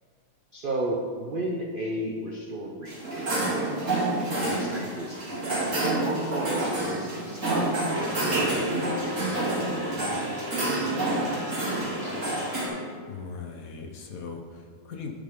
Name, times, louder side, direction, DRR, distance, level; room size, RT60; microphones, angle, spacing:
voice 1, 0.5-4.0 4.4-7.7 8.2-12.2, right 1 dB, 80° right, 0 dB, 0.4 m, -35 dB
sound 1, 2.9-12.7, right 1 dB, 40° right, 2.4 m, -28 dB
voice 2, 12.7-15.1, left 5 dB, 60° left, 2 dB, 1.1 m, -40 dB
9.9 x 7.4 x 3.7 m, 2.1 s
omnidirectional pair, 2.0 m